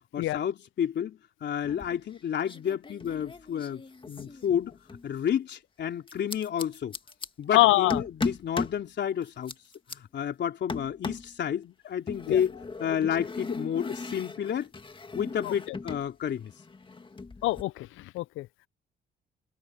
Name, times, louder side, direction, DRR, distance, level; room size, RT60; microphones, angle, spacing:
voice 1, 0.1-7.0 7.4-9.5 9.9-14.7 15.1-16.5, left 9 dB, 60° left, 3.5 m, -31 dB
sound 1, 1.6-2.2 2.4-5.1 6.1-7.3 7.9-8.8 9.2-10.0 10.7-11.3 12.1-16.1 16.3-17.6, left 3 dB, 25° left, 1.9 m, -37 dB
voice 2, 7.5-8.0 12.3-12.4 15.4-15.5 17.4-17.9 18.1-18.5, left 18 dB, 80° left, 0.4 m, -24 dB
cardioid pair, 90°, 20 cm